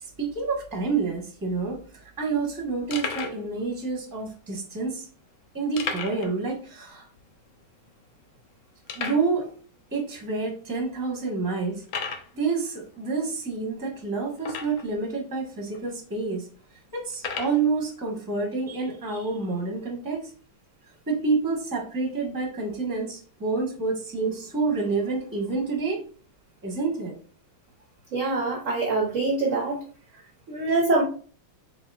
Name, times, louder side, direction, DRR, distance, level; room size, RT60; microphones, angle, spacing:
voice 1, 0.0-5.1 5.5-7.1 8.9-9.5 9.9-11.8 12.3-16.5 16.9-20.3 21.1-26.0 26.6-27.1, right 4 dB, 15° right, -1 dB, 0.8 m, -28 dB
sound 1, 1.4-1.5 1.7-1.9 2.4-2.5 2.9-3.4 4.2-4.3 5.8-6.3 6.6-6.7 7.2-7.3 7.9-8.0 8.9-9.3 10.1-10.2 10.8-10.9 11.8-12.3 14.4-15.0 15.7-15.8 17.1-17.6, left 5 dB, 80° left, 0.7 m, -33 dB
voice 2, 28.1-29.8 30.5-31.0, right 3 dB, 65° right, 0 dB, 0.7 m, -24 dB
4.1 x 4.1 x 2.3 m, 0.42 s
omnidirectional pair, 2.1 m